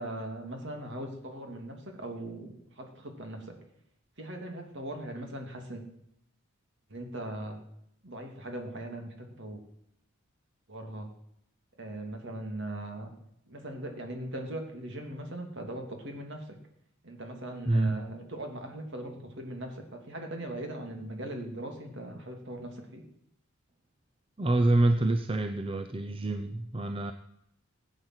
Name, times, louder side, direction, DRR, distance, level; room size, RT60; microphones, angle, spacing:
voice 1, 0.0-3.5 4.2-5.8 6.9-7.6 8.0-9.6 10.7-11.1 11.8-13.1 13.5-16.5 17.0-23.0, right 1 dB, 55° right, 3 dB, 3.0 m, -39 dB
voice 2, 17.7-18.0 24.4-27.1, right 2 dB, 25° right, 8 dB, 0.7 m, -26 dB
16.5 x 9.1 x 8.0 m, 0.76 s
head